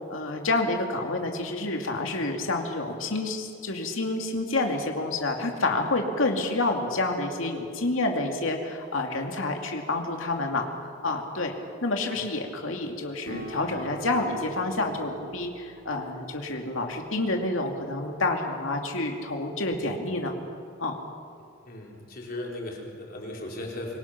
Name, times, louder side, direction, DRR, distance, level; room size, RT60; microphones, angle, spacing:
voice 1, 0.1-10.7 11.0-11.5 11.8-20.3 20.8-21.0, left 2 dB, 80° left, 3 dB, 2.5 m, -28 dB
Acoustic guitar, 13.3-18.1, right 2 dB, 85° right, 5.0 m, -44 dB
voice 2, 21.7-24.0, left 1 dB, 50° left, -1 dB, 4.3 m, -37 dB
25.0 x 23.0 x 5.9 m, 2.3 s
head